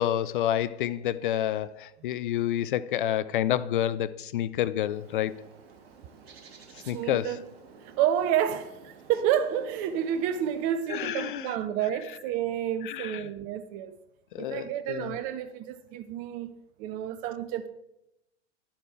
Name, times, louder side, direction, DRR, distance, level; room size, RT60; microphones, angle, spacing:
voice 1, 0.0-5.4 6.9-7.4 10.9-11.6 12.8-13.3 14.3-15.1, left 11 dB, 45° left, 0.4 m, -29 dB
Bird, 4.8-10.8, right 5 dB, 55° right, 1.6 m, -52 dB
voice 2, 6.9-7.4 7.8-14.0 14.4-16.5 16.8-17.7, right 10 dB, 25° right, 0.4 m, -29 dB
11.0 x 7.2 x 4.5 m
figure-of-eight pair, 100°, 36 cm